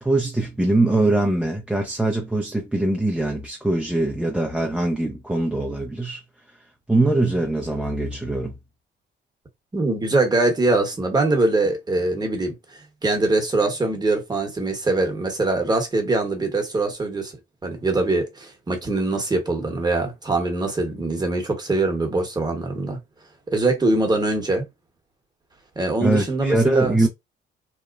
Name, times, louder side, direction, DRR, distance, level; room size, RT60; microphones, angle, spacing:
voice 1, 0.0-6.2 6.9-8.5 26.0-27.1, right 2 dB, 5° right, 0.5 m, -22 dB
voice 2, 9.7-23.0 23.5-24.6 25.8-27.1, right 2 dB, 20° right, 1.1 m, -23 dB
3.0 x 2.1 x 2.4 m
cardioid pair, 90°, 20 cm